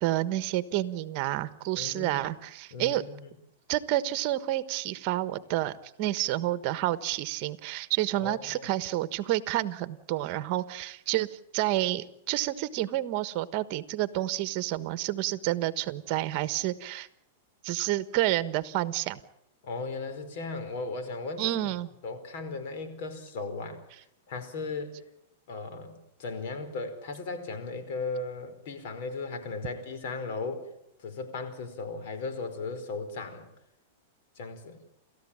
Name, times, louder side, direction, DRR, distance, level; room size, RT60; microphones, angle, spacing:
voice 1, 0.0-3.0 3.7-17.1 17.6-19.2 21.4-21.9, right 15 dB, 45° right, 14 dB, 1.3 m, -29 dB
voice 2, 1.8-2.2 2.7-3.3 8.2-8.7 19.6-21.7 22.0-23.8 24.3-25.0 25.5-30.6 31.0-33.5 34.4-34.8, left 3 dB, 60° left, 8 dB, 4.8 m, -36 dB
30.0 x 14.0 x 8.8 m, 0.79 s
hypercardioid pair, 135°, 0 cm